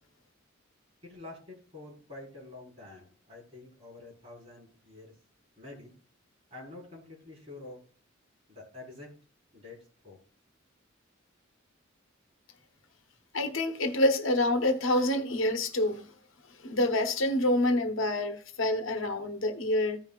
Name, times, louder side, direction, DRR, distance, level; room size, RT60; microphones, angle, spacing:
voice 1, 1.0-5.1 5.6-5.9 6.5-7.8 8.5-9.1 9.5-9.8 10.0-10.2, left 2 dB, 30° right, 4.5 m, -47 dB
voice 2, 13.3-16.1 16.6-20.0, left 1 dB, 75° left, 1.1 m, -27 dB
15.0 x 5.6 x 2.4 m
head